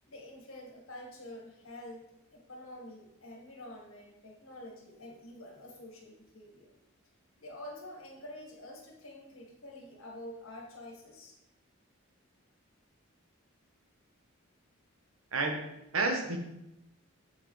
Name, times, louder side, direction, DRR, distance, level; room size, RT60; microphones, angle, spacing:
voice 1, 0.1-2.1 2.3-6.7 7.4-11.4, left 1 dB, 75° left, 0 dB, 1.8 m, -47 dB
voice 2, 15.3-16.4, right 3 dB, 90° right, 3 dB, 1.2 m, -31 dB
7.6 x 6.7 x 3.3 m, 0.87 s
head